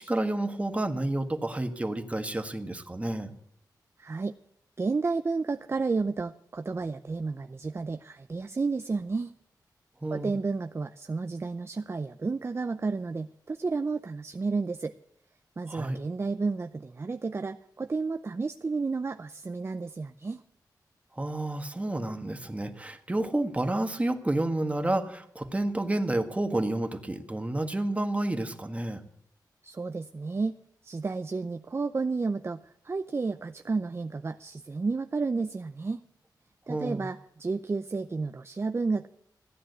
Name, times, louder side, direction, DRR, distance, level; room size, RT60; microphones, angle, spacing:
voice 1, 0.0-3.3 10.0-10.3 15.7-16.0 21.2-29.0 36.7-37.1, right 1 dB, 20° right, 6 dB, 1.6 m, -30 dB
voice 2, 4.0-4.3 4.8-9.3 10.1-15.0 15.6-20.4 29.6-36.0 36.7-39.1, right 4 dB, 35° right, 9 dB, 0.6 m, -31 dB
15.0 x 10.0 x 8.0 m, 0.70 s
wide cardioid pair, 85°, 7 cm